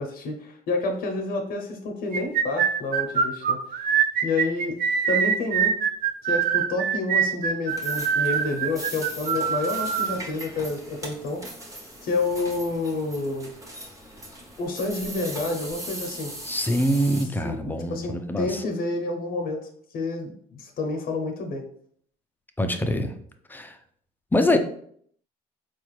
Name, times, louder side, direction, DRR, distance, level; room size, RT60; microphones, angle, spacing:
voice 1, 0.0-3.9 4.2-4.8 5.1-5.7 6.2-11.4 12.0-13.5 14.6-16.3 17.4-19.6 19.9-21.6, left 3 dB, 65° left, 4 dB, 0.6 m, -29 dB
sound 1, 2.1-10.2, right 7 dB, 60° right, 0.4 m, -24 dB
sound 2, 7.7-17.2, right 1 dB, 20° right, 0.9 m, -39 dB
voice 2, 16.4-18.6 22.6-23.1 23.5-23.8 24.3-24.6, left 1 dB, 10° left, 6 dB, 0.4 m, -24 dB
4.4 x 2.4 x 3.0 m, 0.62 s
cardioid pair, 110°, 17 cm